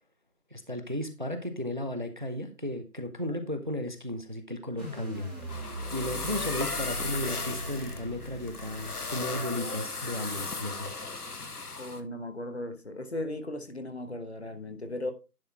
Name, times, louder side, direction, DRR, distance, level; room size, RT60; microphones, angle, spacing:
voice 1, 0.5-5.3 5.9-10.9, left 1 dB, 30° right, 0.7 m, -34 dB
sound 1, 4.8-9.8, equal, 5° left, 1.6 m, -40 dB
sound 2, 5.1-12.0, left 3 dB, 75° left, 1.3 m, -36 dB
voice 2, 11.8-15.1, left 1 dB, 45° left, 1.1 m, -36 dB
10.5 x 4.2 x 4.3 m
figure-of-eight pair, 165°, 46 cm